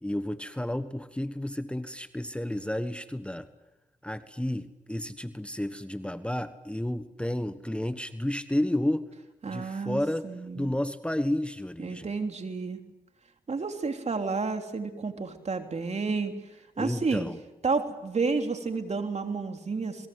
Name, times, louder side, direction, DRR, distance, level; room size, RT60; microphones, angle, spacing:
voice 1, 0.0-3.5 4.0-9.1 9.5-10.3 10.5-12.1 16.8-17.4, left 1 dB, 5° left, 11 dB, 1.3 m, -31 dB
voice 2, 9.4-10.7 11.8-12.8 13.5-16.3 16.8-17.3 17.6-20.1, right 4 dB, 45° right, 5 dB, 3.3 m, -31 dB
28.0 x 21.5 x 7.8 m, 0.99 s
cardioid pair, 60°, 16 cm